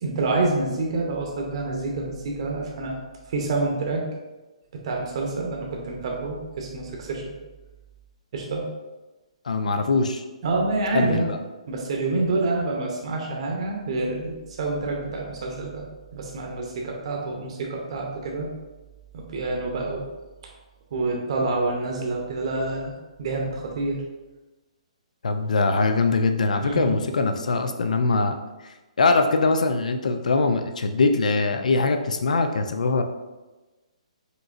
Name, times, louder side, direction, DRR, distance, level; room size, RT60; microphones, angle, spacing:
voice 1, 0.0-3.0 3.3-4.0 4.7-7.2 8.3-8.6 10.4-11.3 11.7-15.8 16.1-18.5 19.1-20.0 20.9-22.9 23.2-24.0 26.6-26.9, right 3 dB, 50° right, 0 dB, 0.7 m, -27 dB
voice 2, 9.5-10.2 10.9-11.4 25.2-28.4 28.6-33.0, left 3 dB, 85° left, 7 dB, 0.4 m, -22 dB
5.1 x 3.0 x 2.4 m, 1.1 s
hypercardioid pair, 155°, 4 cm